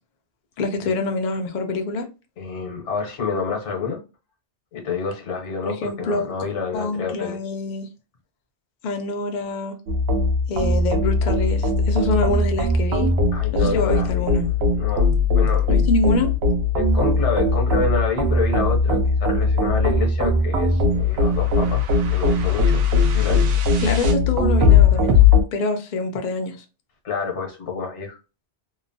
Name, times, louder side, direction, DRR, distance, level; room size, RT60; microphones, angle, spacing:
voice 1, 0.6-2.0 5.7-6.3 6.7-7.9 8.8-9.8 10.5-13.1 13.5-14.6 15.7-16.3 23.8-25.2 25.5-26.6, left 3 dB, 55° left, 0.5 m, -25 dB
voice 2, 2.4-4.0 4.7-7.4 13.3-14.3 14.8-15.7 16.7-23.6 27.0-28.2, left 5 dB, 80° left, 1.2 m, -28 dB
sound 1, 9.9-25.4, left 3 dB, 65° right, 0.8 m, -19 dB
2.9 x 2.0 x 2.6 m
omnidirectional pair, 1.2 m